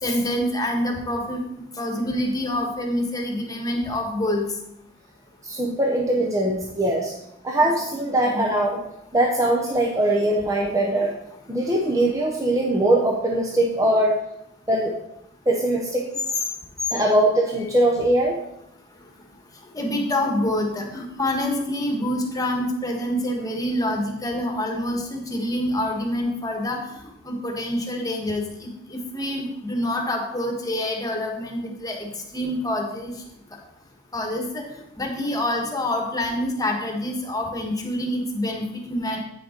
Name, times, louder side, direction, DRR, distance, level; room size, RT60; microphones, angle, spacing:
voice 1, 0.0-1.4 1.8-4.4 8.2-8.5 19.7-26.8 27.2-33.1 34.1-34.6 35.0-39.2, left 1 dB, 20° left, 1 dB, 1.4 m, -26 dB
voice 2, 5.4-7.1 7.4-8.8 9.1-11.1 11.5-14.2 14.7-14.9 15.5-16.0 16.9-18.4, right 1 dB, 15° right, -1 dB, 0.8 m, -21 dB
8.8 x 6.3 x 4.4 m, 0.80 s
head